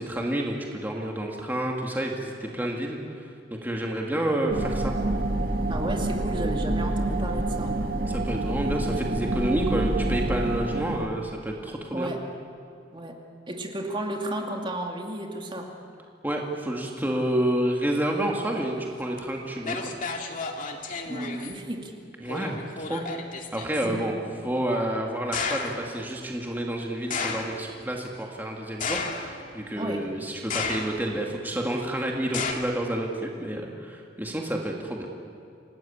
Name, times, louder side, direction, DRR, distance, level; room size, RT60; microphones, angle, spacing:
voice 1, 0.0-4.9 8.1-12.1 16.2-19.9 22.2-23.0 23.5-24.2 24.4-35.1, right 1 dB, 10° right, 0 dB, 2.3 m, -29 dB
sound 1, 4.5-11.1, right 2 dB, 50° right, 2.1 m, -27 dB
voice 2, 5.7-7.7 11.9-12.2 12.9-13.2 13.5-15.7 21.1-21.9 23.8-24.1 29.8-30.1, right 1 dB, 25° right, 2 dB, 2.4 m, -33 dB
sound 2, 19.2-19.3 19.6-21.6 22.3-23.9 25.3-25.9 27.1-27.7 28.8-29.5 30.5-31.2 32.3-32.5, left 4 dB, 45° left, 2.4 m, -32 dB
28.5 x 19.0 x 8.8 m, 2.5 s
head